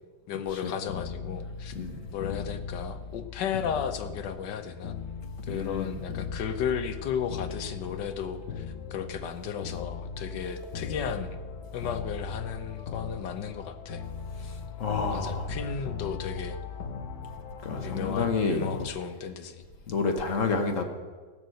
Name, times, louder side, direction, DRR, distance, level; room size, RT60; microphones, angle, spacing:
voice 1, 0.3-1.7 2.1-5.0 5.5-8.7 8.9-11.4 11.7-14.0 15.1-16.6 17.8-19.6, left 7 dB, 65° left, 9 dB, 1.4 m, -34 dB
sound 1, 0.9-18.9, left 5 dB, 85° left, 2.0 m, -38 dB
voice 2, 5.5-5.9 14.4-15.6 17.6-18.6 19.9-20.8, left 4 dB, 45° left, 5 dB, 1.3 m, -29 dB
15.5 x 6.2 x 7.7 m, 1.4 s
omnidirectional pair, 2.1 m